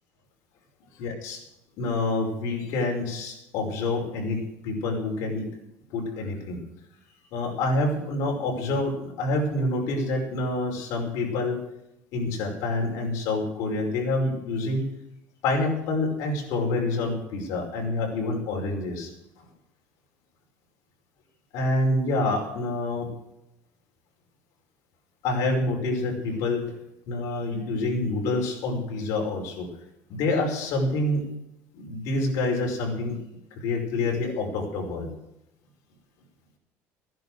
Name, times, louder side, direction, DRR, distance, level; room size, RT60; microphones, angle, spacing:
voice 1, 1.0-1.4 1.8-5.5 5.9-6.6 7.3-11.6 12.1-14.9 15.4-19.1 21.5-23.1 25.2-26.7 27.1-29.7 30.1-31.2 31.7-33.2 33.5-35.1, left 2 dB, 60° left, 0 dB, 5.4 m, -27 dB
16.0 x 11.0 x 6.4 m, 0.84 s
cardioid pair, 160°, 6 cm